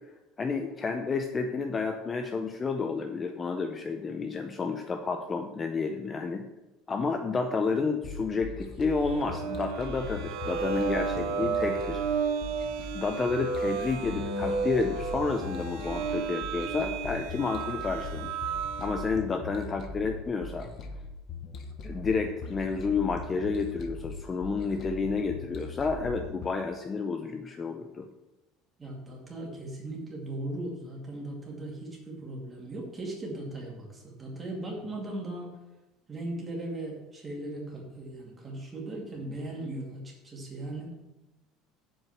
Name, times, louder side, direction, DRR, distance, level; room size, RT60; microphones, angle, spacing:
voice 1, 0.4-6.5 6.9-12.0 12.9-18.3 18.8-20.7 21.8-28.1, left 4 dB, 20° left, 5 dB, 0.5 m, -30 dB
sound 1, 8.0-26.5, left 3 dB, 40° left, 0.9 m, -41 dB
sound 2, 8.9-19.2, right 5 dB, 85° right, 1.5 m, -33 dB
voice 2, 28.8-35.6 36.1-41.0, right 1 dB, 15° right, -2 dB, 2.3 m, -38 dB
7.9 x 4.7 x 7.3 m, 0.99 s
cardioid pair, 155°, 0 cm